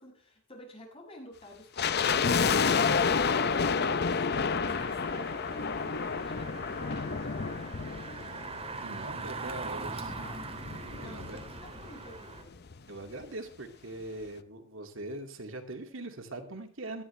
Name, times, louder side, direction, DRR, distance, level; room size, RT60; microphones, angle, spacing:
voice 1, 0.0-8.9 10.1-10.5 11.0-12.6, equal, 30° left, 0 dB, 6.7 m, -51 dB
sound 1, 1.8-9.0 9.3-9.4 10.1-11.9 12.1-12.2 12.5-12.8 13.2-13.3, left 5 dB, 55° left, 0.7 m, -29 dB
Engine, 4.6-12.4, right 3 dB, 30° right, 2.1 m, -42 dB
voice 2, 8.8-10.1 11.0-11.4 12.9-17.0, right 2 dB, 75° right, 4 dB, 2.5 m, -41 dB
18.5 x 13.5 x 3.4 m, 0.40 s
head